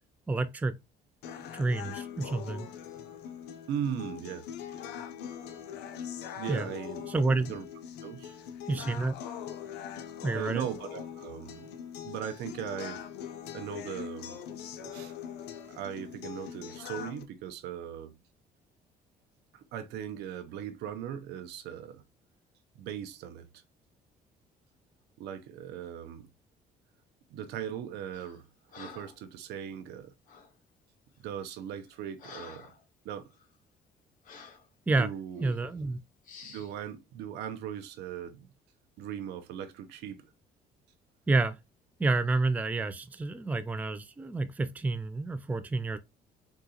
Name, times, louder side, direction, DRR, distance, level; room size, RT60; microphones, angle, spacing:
voice 1, 0.3-0.7 1.5-2.7 6.5-6.7 7.1-7.5 8.7-9.2 10.2-10.7 34.9-35.1 35.4-36.0 41.3-41.6 42.0-46.0, right 3 dB, 10° right, 0.3 m, -29 dB
sound 1, 1.2-17.2, left 9 dB, 80° left, 0.6 m, -42 dB
voice 2, 3.7-4.5 6.4-7.1 7.5-7.7 8.0-8.4 8.8-9.0 10.3-11.8 12.0-13.0 13.5-14.4 14.9-15.1 15.7-18.2 19.5-22.0 22.8-23.5 25.2-26.3 27.3-28.5 28.8-30.1 31.2-32.7 33.0-33.3 35.0-35.5 36.4-38.5 39.0-40.3, right 9 dB, 85° right, 0.6 m, -39 dB
Breathing, 28.1-28.4 28.7-29.2 30.3-30.5 31.2-31.4 31.8-32.8 33.3-33.5 34.2-34.7 35.4-35.6 36.2-36.7, left 5 dB, 50° left, 1.0 m, -49 dB
3.8 x 2.4 x 2.7 m
cardioid pair, 110°, 17 cm